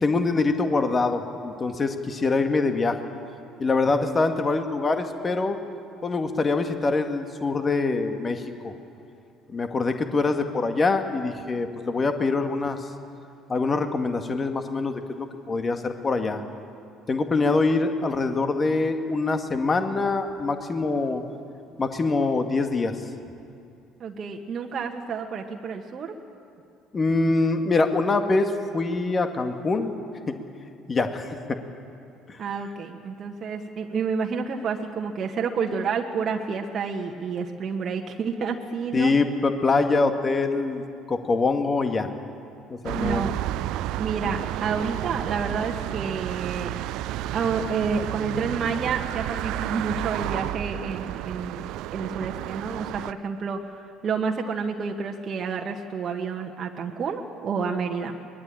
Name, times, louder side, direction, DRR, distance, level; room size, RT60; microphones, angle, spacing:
voice 1, 0.0-3.0 3.6-5.6 6.0-8.7 9.5-12.9 13.5-16.4 17.1-21.2 21.8-22.9 26.9-29.9 30.3-30.4 30.9-31.6 32.3-32.4 38.9-40.8 41.1-42.1 42.7-43.2, left 3 dB, 30° left, 6 dB, 2.0 m, -24 dB
voice 2, 24.0-26.1 32.4-39.1 43.0-43.3 44.0-46.7 47.3-51.6 51.9-58.1, right 5 dB, 40° right, 2 dB, 1.6 m, -29 dB
sound 1, 42.8-53.1, right 14 dB, 60° right, 0.5 m, -31 dB
23.0 x 19.5 x 8.8 m, 2.6 s
figure-of-eight pair, 55°, 0 cm